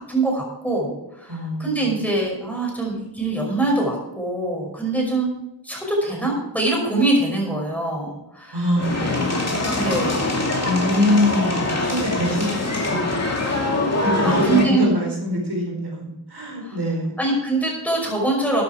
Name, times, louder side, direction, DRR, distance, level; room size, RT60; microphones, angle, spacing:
voice 1, 0.1-5.3 5.6-8.7 9.8-10.3 13.9-14.9 16.6-16.8 17.2-18.6, right 2 dB, 5° left, -2 dB, 5.6 m, -23 dB
voice 2, 1.3-1.8 8.5-9.7 10.6-12.6 12.9-13.2 14.0-17.2, left 1 dB, 55° right, -1 dB, 4.4 m, -24 dB
sound 1, 8.8-14.7, left 2 dB, 30° left, 2.5 m, -23 dB
14.0 x 9.6 x 4.8 m, 0.88 s
wide cardioid pair, 100°, 49 cm